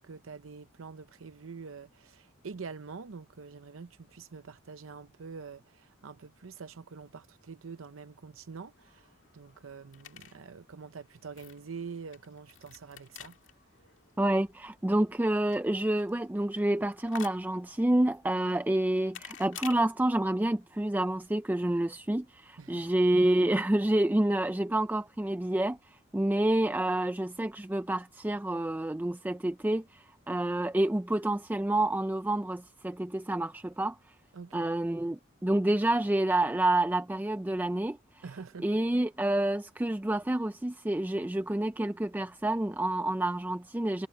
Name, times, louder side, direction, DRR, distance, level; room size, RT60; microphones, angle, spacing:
voice 1, 0.0-9.1 9.3-13.3 22.6-22.9 34.3-34.7 38.2-38.7, right 5 dB, 85° right, 0.6 m, -45 dB
sound 1, 8.6-19.8, left 9 dB, 70° left, 2.1 m, -51 dB
voice 2, 14.2-34.0 34.5-38.3 38.6-44.1, right 1 dB, 10° right, 0.4 m, -28 dB
head